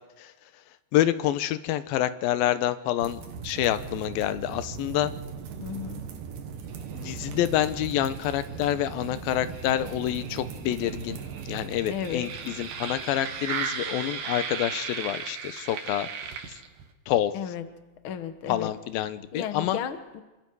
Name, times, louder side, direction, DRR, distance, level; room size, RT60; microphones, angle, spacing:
voice 1, 0.9-5.1 6.9-16.1 16.5-16.6 17.1-17.3 18.5-19.8, left 12 dB, 90° left, 12 dB, 2.7 m, -27 dB
sound 1, 3.0-16.9, right 6 dB, 70° right, 3.1 m, -37 dB
voice 2, 5.6-6.1 11.9-12.3 17.3-17.7 18.0-18.7 19.3-20.2, left 8 dB, 55° left, 8 dB, 1.5 m, -34 dB
27.5 x 25.0 x 4.8 m, 1.1 s
omnidirectional pair, 4.1 m